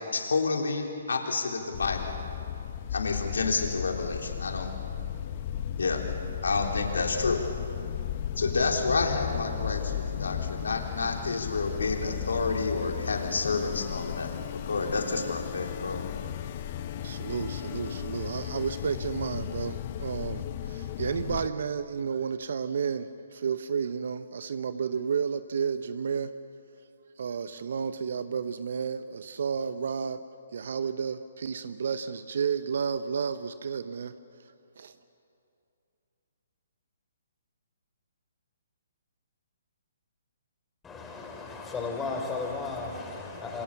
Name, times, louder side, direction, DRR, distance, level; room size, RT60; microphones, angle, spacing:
voice 1, 0.1-2.1 2.9-4.7 5.8-6.0 6.4-7.4 8.4-14.3 14.7-16.1, left 4 dB, 70° left, 3.7 m, -29 dB
sound 1, 1.7-21.5, left 10 dB, 40° left, 1.1 m, -35 dB
voice 2, 17.0-26.3 27.2-30.2 30.5-34.1 34.8-34.9, right 6 dB, 60° right, 0.9 m, -32 dB
voice 3, 40.8-43.6, left 4 dB, 10° left, 4.4 m, -35 dB
27.5 x 26.5 x 7.0 m
figure-of-eight pair, 130°, 0 cm